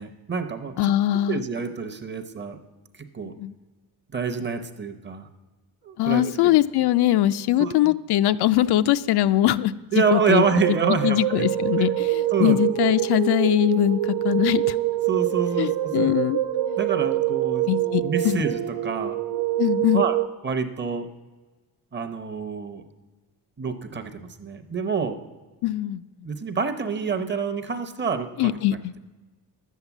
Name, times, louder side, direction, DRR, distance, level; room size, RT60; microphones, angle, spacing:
voice 1, 0.0-0.8 1.3-2.6 3.1-3.4 4.1-5.3 5.8-6.6 7.6-7.8 9.9-11.5 11.8-11.9 12.3-12.6 12.9-13.0 15.1-16.1 16.8-17.7 18.0-19.2 19.9-20.2 20.4-21.1 21.9-22.9 23.6-25.2 26.2-28.5, right 6 dB, 25° right, 7 dB, 0.8 m, -27 dB
voice 2, 0.8-1.4 3.2-3.5 6.0-10.4 10.9-14.8 15.6-16.4 16.7-16.8 17.7-18.4 19.6-20.0 25.6-26.0 28.4-28.9, left 14 dB, 70° left, 13 dB, 0.5 m, -22 dB
sound 1, 10.0-20.3, right 14 dB, 70° right, 0.7 m, -25 dB
11.5 x 8.3 x 7.1 m, 1.2 s
cardioid pair, 180°, 41 cm